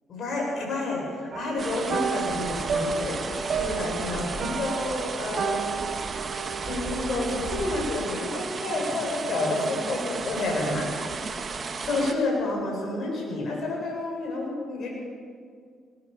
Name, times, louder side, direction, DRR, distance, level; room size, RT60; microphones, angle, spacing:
voice 1, 0.1-5.8 6.6-11.5 11.8-14.9, left 2 dB, 60° left, -1 dB, 7.7 m, -30 dB
sound 1, 1.3-10.9 11.1-11.5 11.9-12.0, right 6 dB, 60° right, 1.4 m, -34 dB
sound 2, 1.6-12.1, right 4 dB, 40° right, 1.7 m, -34 dB
20.0 x 18.5 x 7.1 m, 2.1 s
cardioid pair, 90°, 0 cm